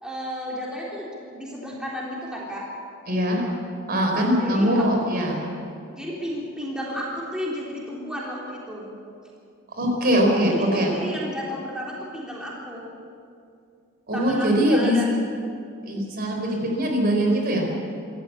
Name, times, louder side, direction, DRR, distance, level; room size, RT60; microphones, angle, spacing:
voice 1, 0.0-2.7 4.4-5.4 5.9-8.9 10.5-12.9 14.1-15.1, equal, 5° right, -5 dB, 3.6 m, -33 dB
voice 2, 3.1-3.5 3.9-5.4 9.7-11.0 14.1-15.0 15.8-17.7, equal, 45° right, 1 dB, 4.3 m, -22 dB
25.5 x 14.5 x 8.5 m, 2.4 s
head